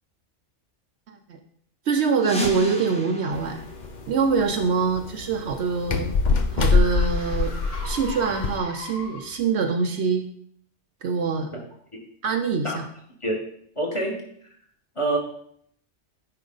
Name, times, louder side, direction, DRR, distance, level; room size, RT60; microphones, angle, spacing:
voice 1, 1.1-1.4 1.9-3.6 4.1-6.1 6.5-7.5 7.8-10.3 11.0-11.5 12.2-12.8, right 5 dB, 65° right, 6 dB, 0.9 m, -24 dB
sound 1, 2.2-4.8, equal, 5° left, 1.1 m, -34 dB
sound 2, 3.3-8.6, left 4 dB, 45° left, 0.7 m, -25 dB
sound 3, 5.3-9.5, left 2 dB, 80° left, 4.2 m, -40 dB
voice 2, 13.7-14.2 14.9-15.2, right 2 dB, 25° left, -1 dB, 1.6 m, -25 dB
9.8 x 4.7 x 3.9 m, 0.65 s
omnidirectional pair, 1.3 m